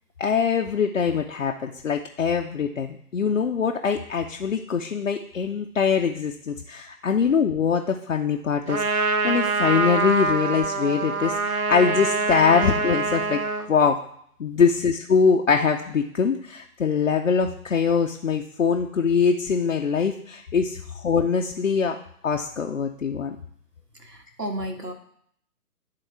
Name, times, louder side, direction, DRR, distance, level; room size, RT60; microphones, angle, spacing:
voice 1, 0.2-13.4 13.7-14.0 14.4-22.0 22.2-23.4, left 6 dB, 55° left, 3 dB, 0.5 m, -23 dB
Trumpet, 8.7-13.7, right 3 dB, 65° right, 0.7 m, -25 dB
voice 2, 24.0-24.9, right 1 dB, 85° right, 4 dB, 1.4 m, -32 dB
11.0 x 3.7 x 3.3 m, 0.66 s
figure-of-eight pair, 140°, 46 cm